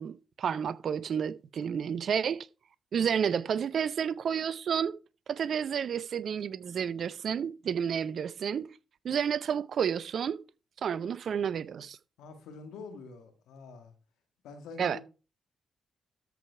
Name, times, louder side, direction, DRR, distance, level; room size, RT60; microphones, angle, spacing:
voice 1, 0.0-2.5 2.9-5.0 5.3-8.7 9.0-10.4 10.8-12.0 14.8-15.0, right 7 dB, 65° right, 0.6 m, -30 dB
voice 2, 12.2-13.9 14.4-15.0, left 4 dB, 75° left, 1.8 m, -46 dB
13.0 x 4.9 x 4.6 m
hypercardioid pair, 40°, 0 cm